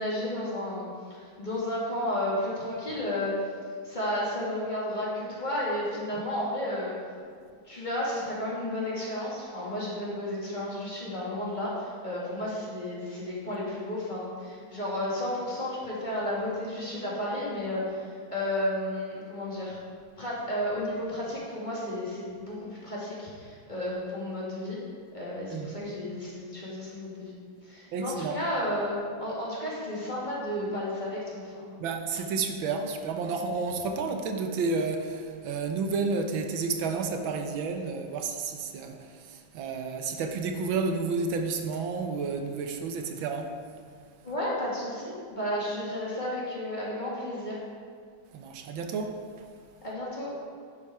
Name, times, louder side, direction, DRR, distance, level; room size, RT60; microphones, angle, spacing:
voice 1, 0.0-3.3 3.8-6.9 7.7-19.8 20.2-24.8 25.1-27.3 27.6-31.8 44.2-47.6 49.8-50.3, left 1 dB, 25° left, -7 dB, 2.4 m, -32 dB
voice 2, 27.9-28.4 31.8-43.6 48.3-49.2, right 4 dB, 85° right, 5 dB, 1.6 m, -31 dB
10.5 x 7.4 x 4.7 m, 2.1 s
omnidirectional pair, 2.1 m